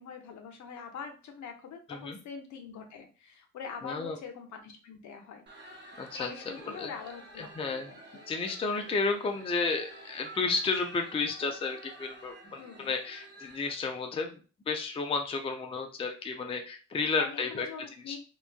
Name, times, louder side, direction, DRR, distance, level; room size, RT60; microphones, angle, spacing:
voice 1, 0.0-5.5 6.2-8.0 12.6-13.0 17.2-18.2, left 6 dB, 70° left, 4 dB, 0.7 m, -44 dB
voice 2, 3.8-4.2 6.0-6.3 6.6-6.9 7.4-7.9 8.3-14.4 14.7-17.7 18.1-18.2, left 4 dB, 20° left, 4 dB, 0.4 m, -32 dB
sound 1, 5.5-13.7, right 1 dB, 35° right, 0.8 m, -49 dB
3.0 x 2.2 x 2.4 m, 0.35 s
cardioid pair, 90°, 30 cm